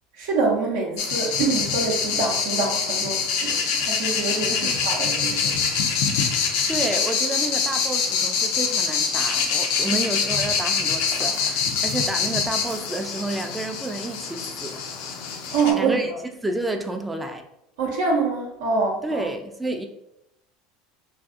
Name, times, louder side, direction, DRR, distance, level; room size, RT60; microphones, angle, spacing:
voice 1, 0.1-5.6 9.9-10.0 15.5-16.2 17.8-19.3, right 4 dB, 75° right, -2 dB, 0.5 m, -25 dB
sound 1, 1.0-15.7, left 6 dB, 65° left, 0.4 m, -25 dB
voice 2, 6.7-14.8 15.7-16.1 16.4-17.4 19.0-19.9, right 2 dB, 10° right, 5 dB, 0.3 m, -30 dB
2.5 x 2.4 x 2.4 m, 0.82 s
hypercardioid pair, 85°, 0 cm